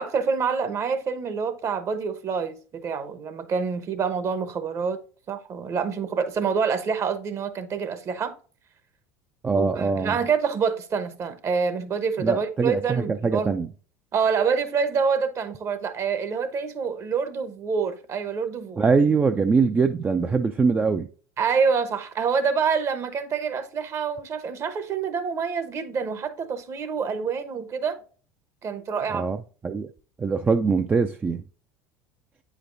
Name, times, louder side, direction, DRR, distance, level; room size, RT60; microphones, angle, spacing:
voice 1, 0.0-5.0 5.3-8.4 9.5-13.5 14.1-18.8 21.4-28.0 28.6-29.3, right 6 dB, 40° right, 1.0 m, -26 dB
voice 2, 9.4-10.2 12.2-13.7 18.8-21.1 29.1-29.4 29.6-29.9 30.2-31.4, right 4 dB, 20° right, 0.4 m, -22 dB
8.6 x 5.1 x 2.6 m
hypercardioid pair, 80°, 8 cm